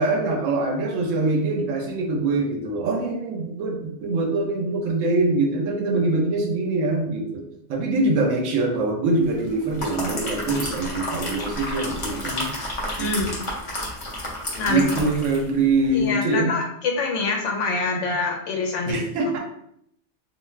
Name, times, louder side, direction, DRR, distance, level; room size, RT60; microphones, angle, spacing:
voice 1, 0.0-7.4 7.7-12.5 13.0-13.4 14.7-16.5 18.9-19.4, right 2 dB, 80° right, 2 dB, 1.0 m, -23 dB
sound 1, 9.5-15.5 15.8-16.0, left 1 dB, 30° left, 0.6 m, -31 dB
voice 2, 13.0-13.4 14.5-14.8 15.9-19.3, left 3 dB, 75° left, 1 dB, 1.0 m, -25 dB
2.6 x 2.3 x 3.2 m, 0.71 s
omnidirectional pair, 1.3 m